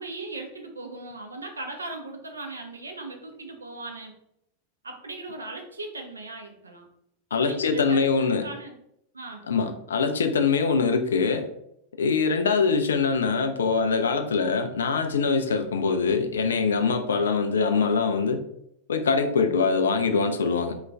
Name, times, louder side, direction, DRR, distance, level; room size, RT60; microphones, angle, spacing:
voice 1, 0.0-4.1 4.8-6.9 7.5-8.8 9.1-9.5, right 2 dB, 75° right, 3 dB, 0.5 m, -38 dB
voice 2, 7.3-8.5 9.5-11.5 12.0-18.5 18.9-20.7, left 5 dB, 65° left, 8 dB, 0.3 m, -23 dB
2.3 x 2.2 x 3.4 m, 0.76 s
figure-of-eight pair, 90°, 0 cm